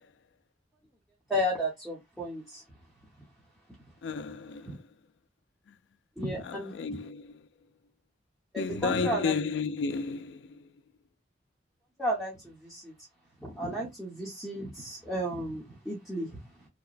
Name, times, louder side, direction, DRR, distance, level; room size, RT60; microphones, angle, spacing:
voice 1, 1.3-2.6 4.7-4.8 6.2-7.0 8.5-9.3 12.0-12.9 13.4-16.4, equal, ahead, 0.9 m, -33 dB
voice 2, 4.0-4.7 6.4-7.3 8.6-10.4, left 5 dB, 85° left, 0.3 m, -32 dB
2.9 x 2.0 x 2.5 m
head